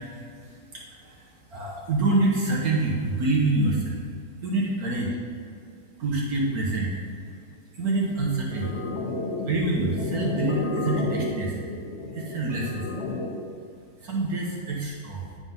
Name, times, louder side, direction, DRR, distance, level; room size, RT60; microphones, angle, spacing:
voice 1, 0.7-4.0 4.4-5.1 6.0-7.0 7.7-8.8 9.5-11.7 12.1-12.9 14.0-15.3, right 2 dB, 65° right, -3 dB, 1.5 m, -26 dB
sound 1, 8.5-13.5, left 3 dB, 50° left, 0.8 m, -31 dB
9.6 x 3.9 x 5.4 m, 2.4 s
omnidirectional pair, 1.8 m